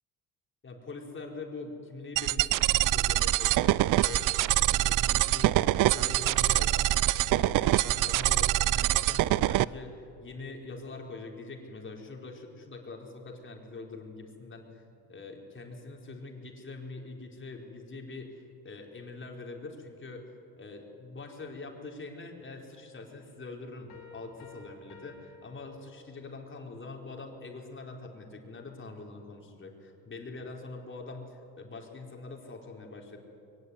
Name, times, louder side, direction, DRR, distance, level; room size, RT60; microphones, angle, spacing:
voice 1, 0.6-6.9 7.3-14.8 15.1-20.3 20.6-33.2, left 3 dB, 35° left, 1 dB, 4.5 m, -44 dB
sound 1, 2.2-9.6, right 15 dB, 60° right, 0.5 m, -25 dB
sound 2, 23.9-26.4, left 5 dB, 75° left, 2.9 m, -52 dB
22.5 x 18.0 x 9.6 m, 2.6 s
cardioid pair, 90°, 36 cm